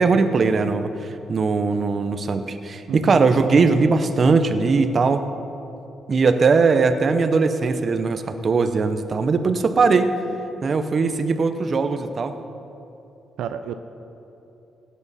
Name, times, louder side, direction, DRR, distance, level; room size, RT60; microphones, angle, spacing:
voice 1, 0.0-5.3 6.1-10.1 10.6-12.3, right 4 dB, 40° right, 9 dB, 0.7 m, -20 dB
voice 2, 2.9-3.2 13.4-13.7, right 8 dB, 85° right, 9 dB, 0.5 m, -30 dB
16.5 x 9.5 x 4.1 m, 2.9 s
cardioid pair, 110°, 0 cm